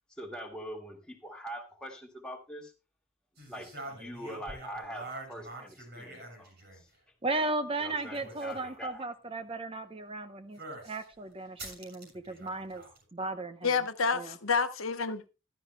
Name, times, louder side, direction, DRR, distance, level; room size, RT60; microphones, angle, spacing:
voice 1, 0.1-2.7 3.5-6.9 7.8-9.0, equal, 5° left, 2.0 m, -43 dB
sound 1, 3.4-7.0 7.9-8.8 10.6-11.0 11.6-13.0, right 2 dB, 55° right, 6.6 m, -45 dB
voice 2, 7.2-12.8 13.1-13.8 14.1-14.4, right 2 dB, 25° right, 0.7 m, -35 dB
voice 3, 13.6-15.3, left 5 dB, 80° left, 1.0 m, -29 dB
15.0 x 12.5 x 2.3 m
head